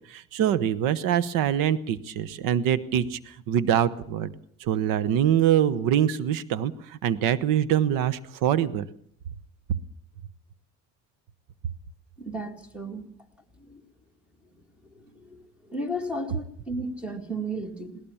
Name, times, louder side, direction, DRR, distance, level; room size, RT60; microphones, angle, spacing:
voice 1, 0.1-4.3 4.6-8.9, right 10 dB, 85° right, 17 dB, 1.1 m, -24 dB
voice 2, 12.2-13.1 13.6-13.8 14.9-15.4 15.7-18.0, right 1 dB, 5° right, 8 dB, 2.0 m, -34 dB
21.0 x 18.0 x 7.1 m, 0.63 s
cardioid pair, 170°, 32 cm